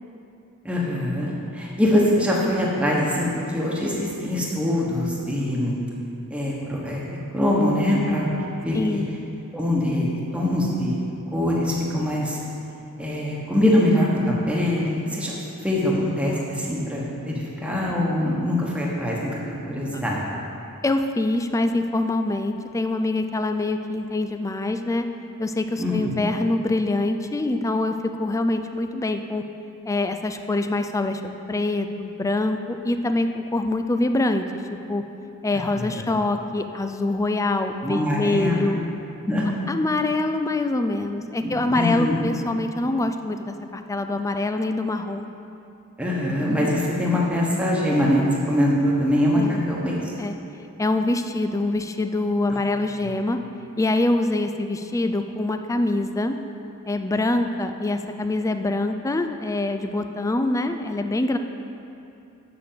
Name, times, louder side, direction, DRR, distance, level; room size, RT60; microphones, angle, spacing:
voice 1, 0.6-5.7 6.3-7.0 7.3-8.3 8.6-9.0 9.5-10.1 10.3-11.0 11.3-12.4 13.0-15.4 15.6-17.3 17.6-19.4 19.7-20.2 25.8-25.9 35.5-36.0 37.8-38.7 39.2-39.5 41.4-42.2 46.0-50.0, left 1 dB, 5° right, -5 dB, 1.2 m, -23 dB
voice 2, 8.7-9.1 19.9-20.0 20.8-25.1 25.4-29.4 29.8-31.2 31.5-34.4 34.9-35.0 35.4-38.8 39.7-45.3 49.3-49.6 50.2-50.3 50.8-53.4 53.8-56.4 56.9-61.4, left 2 dB, 15° left, 7 dB, 0.4 m, -24 dB
6.8 x 6.8 x 7.5 m, 2.8 s
head